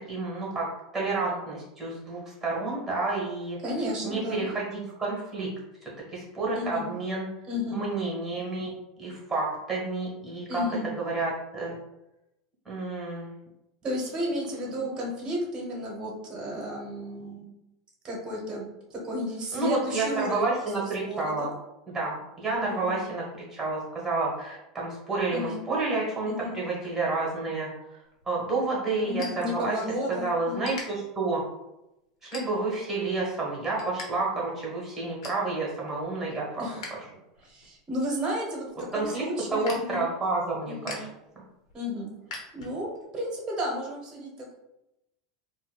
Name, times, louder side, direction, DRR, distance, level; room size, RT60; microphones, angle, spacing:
voice 1, 0.1-3.6 4.0-5.5 5.8-7.3 7.7-8.7 9.0-10.6 11.0-11.8 12.6-13.3 19.5-21.5 21.9-23.2 23.5-27.7 28.2-29.8 30.1-31.4 32.2-36.6 38.9-39.2 39.5-41.1, right 3 dB, 10° right, -4 dB, 1.2 m, -30 dB
voice 2, 3.6-4.5 6.5-6.9 7.5-7.8 10.5-10.9 13.8-17.6 18.0-21.5 22.6-23.0 25.3-25.6 26.3-26.5 29.0-30.8 36.6-36.8 37.4-38.7 38.9-40.1 40.7-41.0 41.7-42.1 42.5-44.5, equal, 25° right, -2 dB, 0.9 m, -33 dB
sound 1, 28.0-30.1 30.4-30.8 31.4-31.6 32.2-32.9 33.3-34.1 34.4-34.5 34.8-35.5 35.9-36.9 37.3-43.0, left 3 dB, 90° left, 0.8 m, -44 dB
3.9 x 2.2 x 2.3 m, 0.89 s
supercardioid pair, 130°, 3 cm